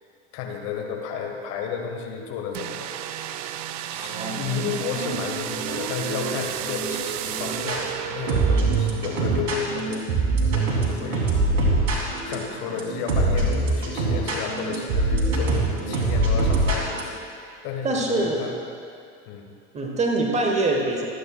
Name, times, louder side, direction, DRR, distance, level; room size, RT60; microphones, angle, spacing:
voice 1, 0.3-3.3 3.9-10.1 10.5-11.3 12.0-18.5 19.2-19.5, left 6 dB, 40° left, 2 dB, 1.5 m, -32 dB
sound 1, 2.5-9.4, right 11 dB, 35° right, 0.4 m, -32 dB
voice 2, 3.9-4.4 17.8-18.5 19.7-21.1, right 2 dB, 20° right, 1 dB, 1.2 m, -24 dB
sound 2, 5.1-7.8 8.3-17.0, right 2 dB, 60° right, 2.2 m, -24 dB
24.5 x 8.3 x 2.3 m, 2.3 s
figure-of-eight pair, 80°, 37 cm